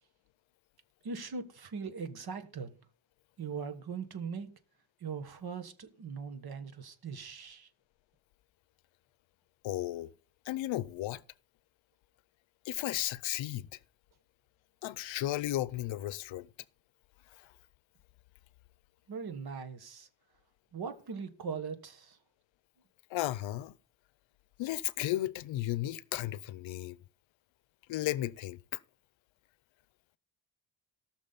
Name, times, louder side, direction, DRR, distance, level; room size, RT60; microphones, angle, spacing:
voice 1, 1.0-2.8 3.4-4.5 5.0-7.7 19.1-20.1 20.7-22.2, right 5 dB, 55° right, 1.5 m, -40 dB
voice 2, 9.6-10.1 10.5-11.2 12.7-13.7 14.8-16.5 23.1-23.7 24.6-27.0 27.9-28.8, left 15 dB, 90° left, 0.6 m, -34 dB
18.0 x 6.3 x 4.0 m
cardioid pair, 105°, 45 cm